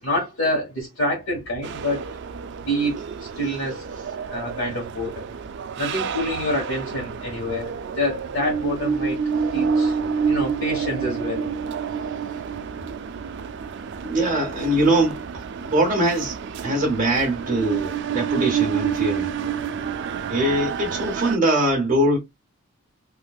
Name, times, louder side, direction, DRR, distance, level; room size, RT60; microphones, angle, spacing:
voice 1, 0.0-2.1 2.7-3.8 4.3-5.3 5.8-9.2 9.5-10.0 10.3-11.5, left 1 dB, 70° left, 1.4 m, -27 dB
sound 1, 1.6-21.4, right 6 dB, 55° right, 0.4 m, -28 dB
voice 2, 14.0-15.2 15.6-16.4 16.6-19.3 20.3-22.2, right 1 dB, 40° right, 1.2 m, -22 dB
3.7 x 2.7 x 2.3 m
head